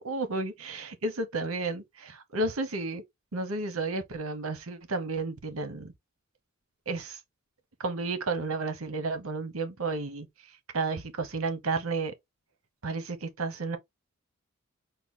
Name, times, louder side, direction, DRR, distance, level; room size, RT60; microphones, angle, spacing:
voice 1, 0.0-3.0 3.3-5.9 6.9-7.2 7.8-10.3 10.7-12.1 12.8-13.8, right 3 dB, 75° right, 1.0 m, -32 dB
5.8 x 2.3 x 3.7 m
head